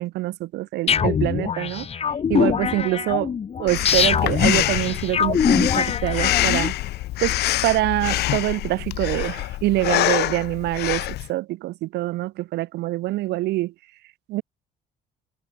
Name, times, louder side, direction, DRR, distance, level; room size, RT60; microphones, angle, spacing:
voice 1, 0.0-1.9 2.3-6.7 7.2-13.7 14.3-14.4, right 17 dB, 80° right, 3.8 m, -25 dB
sound 1, 0.9-6.7, left 7 dB, 35° left, 1.6 m, -23 dB
Breathing, 3.7-11.3, left 16 dB, 75° left, 1.1 m, -25 dB
cardioid pair, 110°, 17 cm